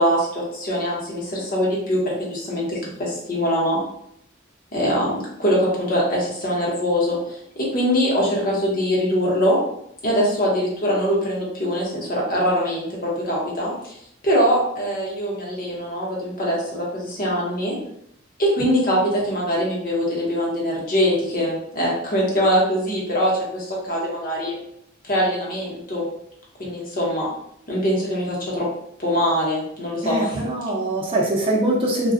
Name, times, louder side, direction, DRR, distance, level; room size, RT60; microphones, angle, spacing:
voice 1, 0.0-3.8 4.7-9.6 10.0-14.0 14.2-17.7 18.4-24.6 25.1-26.1 26.6-27.3 27.7-28.7 29.0-30.4, equal, 45° left, -4 dB, 1.0 m, -23 dB
voice 2, 30.0-32.1, right 1 dB, 25° right, -2 dB, 0.6 m, -22 dB
2.4 x 2.2 x 3.6 m, 0.72 s
head